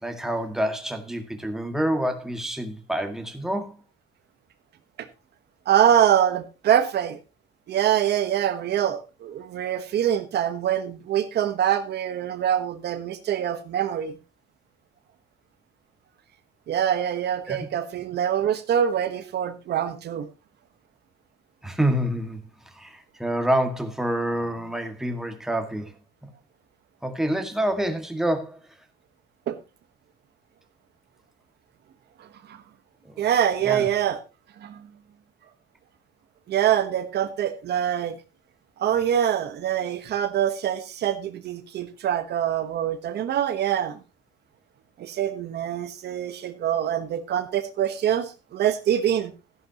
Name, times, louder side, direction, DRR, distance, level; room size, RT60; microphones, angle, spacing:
voice 1, 0.0-3.7 17.5-17.7 21.6-25.9 26.2-26.3 27.0-28.6 33.1-33.2 33.6-33.9, right 1 dB, ahead, 2.0 m, -27 dB
voice 2, 5.7-7.2 7.7-14.2 16.7-20.3 29.5-29.6 32.5-32.6 33.2-34.2 34.6-34.8 36.5-38.1 38.8-44.0 45.0-49.3, right 10 dB, 60° right, 1.3 m, -24 dB
13.5 x 11.0 x 3.0 m
cardioid pair, 115°, 20 cm